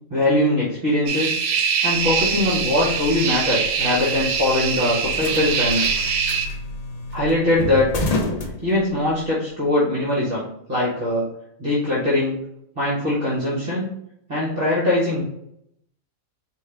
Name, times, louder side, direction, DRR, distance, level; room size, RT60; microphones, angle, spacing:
voice 1, 0.1-1.4 1.8-5.9 7.1-8.1 8.4-10.4 10.7-11.3 11.6-12.4 12.7-13.9 14.3-15.2, left 1 dB, 40° right, -6 dB, 1.4 m, -21 dB
sound 1, 1.1-6.5, right 6 dB, 90° right, 1.1 m, -23 dB
sound 2, 1.9-9.3, left 2 dB, 55° left, 0.4 m, -31 dB
4.6 x 2.8 x 3.3 m, 0.78 s
omnidirectional pair, 1.5 m